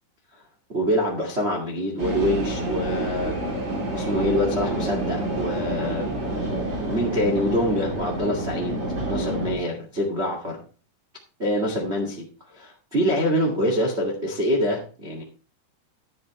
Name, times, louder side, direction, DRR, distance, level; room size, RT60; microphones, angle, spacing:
voice 1, 0.7-3.3 3.9-6.1 6.9-8.8 9.1-10.6 11.4-15.2, equal, 85° right, 0 dB, 0.5 m, -25 dB
sound 1, 2.0-9.5, right 1 dB, 30° right, 3.4 m, -28 dB
11.5 x 9.1 x 3.2 m, 0.36 s
omnidirectional pair, 5.2 m